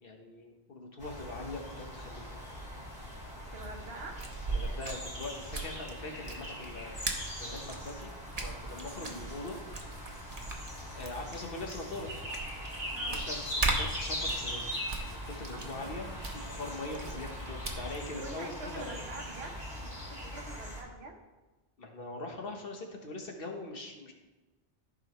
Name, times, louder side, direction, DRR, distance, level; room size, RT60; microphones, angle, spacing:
voice 1, 0.0-2.4 4.5-7.1 7.4-8.1 8.4-9.6 10.9-12.1 13.1-19.0 21.8-24.1, left 2 dB, 60° left, 2 dB, 1.3 m, -42 dB
sound 1, 1.0-20.8, equal, 25° left, 2.8 m, -41 dB
voice 2, 3.5-4.2 9.0-9.3 12.9-13.2 15.5-16.0 18.1-21.2, right 3 dB, 75° right, 3 dB, 1.3 m, -46 dB
sound 2, 4.0-18.1, right 3 dB, 40° right, 1.0 m, -39 dB
sound 3, 8.3-17.5, left 1 dB, 45° left, 1.7 m, -61 dB
14.5 x 5.1 x 3.1 m, 1.2 s
omnidirectional pair, 1.1 m